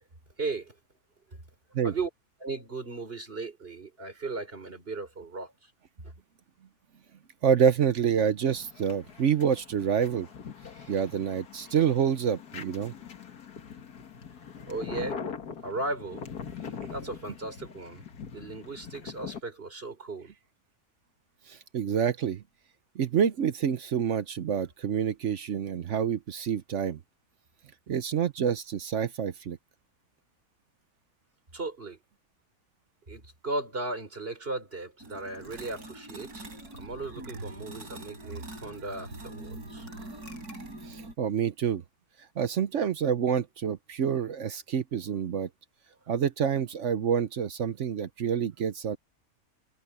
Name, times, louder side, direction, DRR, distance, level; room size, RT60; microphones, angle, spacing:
voice 1, 0.4-0.8 1.3-1.4 1.8-2.1 2.4-5.7 6.0-6.1 10.7-11.0 11.7-11.8 12.9-13.1 14.7-15.2 15.6-16.2 16.5-18.1 18.3-20.3 31.5-32.0 33.1-36.5 36.7-39.9, right 3 dB, 35° right, 4.2 m, -37 dB
voice 2, 7.4-10.3 10.9-12.9 21.5-22.4 23.0-27.0 27.9-29.6 40.9-41.8 42.4-45.5 46.1-49.0, right 8 dB, 55° right, 1.0 m, -27 dB
sound 1, 8.4-19.4, left 6 dB, 80° left, 2.2 m, -42 dB
sound 2, 35.0-41.1, right 2 dB, 80° right, 4.8 m, -43 dB
omnidirectional pair, 1.6 m